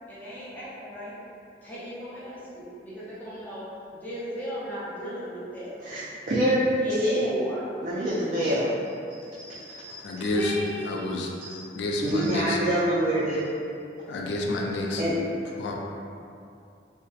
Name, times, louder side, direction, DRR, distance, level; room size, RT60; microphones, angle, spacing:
voice 1, 0.1-1.2 1.6-3.6 3.9-6.1 6.8-7.7 10.3-11.2, equal, 10° left, -10 dB, 0.5 m, -36 dB
voice 2, 5.8-7.2 7.8-8.7 9.2-10.3 11.4-13.4 15.0-15.1, equal, 40° right, -8 dB, 0.3 m, -26 dB
voice 3, 10.0-10.5 10.8-11.3 11.7-12.6 14.1-15.0 15.6-15.7, left 2 dB, 75° left, 0 dB, 0.3 m, -29 dB
2.7 x 2.0 x 2.3 m, 2.6 s
head